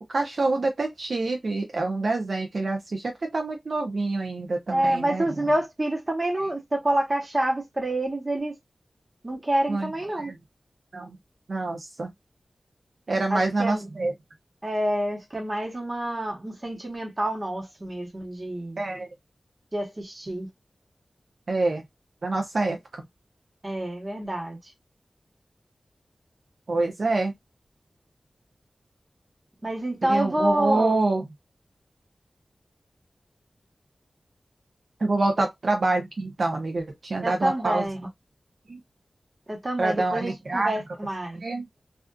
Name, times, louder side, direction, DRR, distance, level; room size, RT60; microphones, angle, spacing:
voice 1, 0.0-5.3 6.4-6.5 9.7-9.9 10.2-10.4 10.9-11.2 11.5-12.1 13.1-14.1 18.8-19.1 21.5-21.8 22.2-22.8 26.7-27.3 30.0-31.2 35.0-37.9 38.7-38.8 39.8-40.7 41.4-41.6, right 2 dB, 65° right, 0.5 m, -26 dB
voice 2, 4.7-8.5 9.2-10.3 13.3-13.9 14.6-18.8 19.7-20.5 23.6-24.6 29.6-31.0 37.2-38.0 39.5-41.4, right 1 dB, 30° right, 1.0 m, -27 dB
2.4 x 2.4 x 2.2 m
wide cardioid pair, 80°, 0 cm